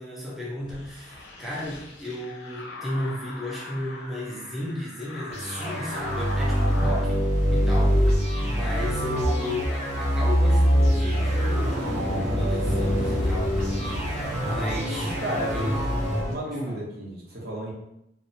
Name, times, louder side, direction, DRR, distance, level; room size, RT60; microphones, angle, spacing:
voice 1, 0.0-7.2 7.5-8.1 8.4-13.7 14.4-15.1 15.5-15.8 16.5-16.8, left 1 dB, ahead, -5 dB, 0.3 m, -34 dB
sound 1, 0.6-7.1, left 2 dB, 85° left, 0.5 m, -41 dB
sound 2, 5.3-16.3, equal, 35° right, 1.1 m, -24 dB
voice 2, 15.0-17.7, right 1 dB, 55° right, -5 dB, 0.8 m, -33 dB
2.7 x 2.0 x 2.6 m, 0.82 s
head